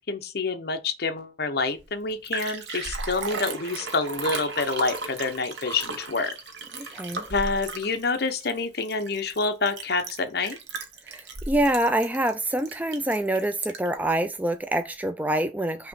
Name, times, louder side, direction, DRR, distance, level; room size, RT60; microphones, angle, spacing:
voice 1, 0.1-6.3 7.3-10.6, left 3 dB, 55° left, 0.9 m, -27 dB
Liquid, 1.8-1.9 2.1-14.0 14.5-14.6, right 3 dB, 65° right, 1.1 m, -35 dB
voice 2, 6.8-7.2 11.1-15.9, right 1 dB, 10° right, 0.3 m, -26 dB
5.8 x 2.9 x 5.6 m
head